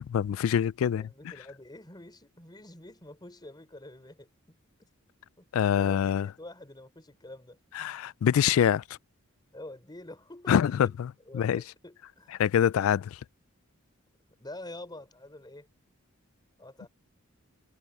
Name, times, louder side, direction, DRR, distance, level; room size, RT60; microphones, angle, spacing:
voice 1, 0.0-1.1 5.5-6.3 7.8-8.8 10.5-11.6 12.4-13.2, left 9 dB, 70° left, 0.3 m, -25 dB
voice 2, 1.0-4.6 5.4-5.5 5.8-7.6 9.5-10.9 11.3-12.4 14.4-15.7 16.6-16.9, left 1 dB, 20° left, 4.1 m, -47 dB
head